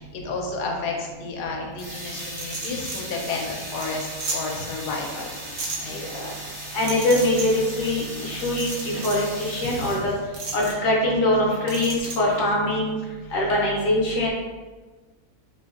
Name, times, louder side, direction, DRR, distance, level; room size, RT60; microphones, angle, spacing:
voice 1, 0.0-5.3 5.8-6.0 9.6-10.0 13.2-13.3, left 3 dB, 85° left, 0 dB, 1.1 m, -32 dB
sound 1, 1.7-10.4, right 1 dB, 30° right, 0.6 m, -37 dB
sound 2, 2.2-3.0 3.4-3.5 3.8-3.9 4.2-4.4 5.6-5.8 6.9-7.5 8.4-9.2 10.3-10.7 11.7-12.2, right 3 dB, 60° right, 1.0 m, -32 dB
voice 2, 5.9-6.3 6.7-10.1 10.5-13.0 13.3-14.3, left 1 dB, 65° left, -3 dB, 0.9 m, -23 dB
2.9 x 2.6 x 2.3 m, 1.3 s
omnidirectional pair, 1.7 m